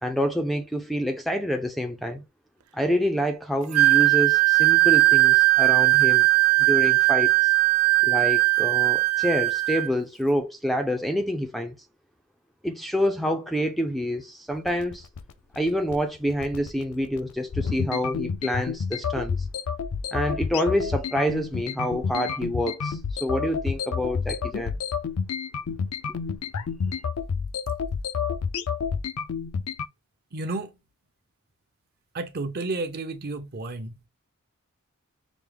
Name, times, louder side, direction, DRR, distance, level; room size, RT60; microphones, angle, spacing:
voice 1, 0.0-2.2 2.7-6.3 6.6-7.5 8.0-11.7 12.6-15.1 15.6-19.4 20.1-24.8 26.1-26.2, equal, ahead, 0.4 m, -27 dB
Wind instrument woodwind instrument, 3.7-9.9, right 22 dB, 85° right, 0.4 m, -19 dB
sound 1, 14.5-29.9, left 6 dB, 80° left, 0.5 m, -29 dB
voice 2, 30.3-30.7 32.1-34.1, right 2 dB, 45° right, 0.7 m, -31 dB
6.0 x 2.1 x 3.3 m
head